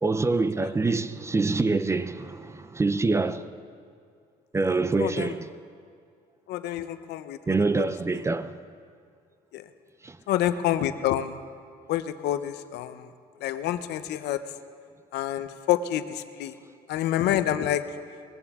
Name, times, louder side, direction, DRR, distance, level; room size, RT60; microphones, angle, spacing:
voice 1, 0.0-3.5 4.5-5.5 7.5-8.6 10.0-10.2, right 3 dB, 15° right, 0.5 m, -25 dB
voice 2, 5.0-5.4 6.5-7.8 8.1-8.2 9.5-9.7 10.3-11.4 11.9-13.1 13.4-14.4 15.1-16.5 16.9-17.8, left 12 dB, 80° left, 0.7 m, -28 dB
20.0 x 15.5 x 3.6 m
cardioid pair, 110°, 17 cm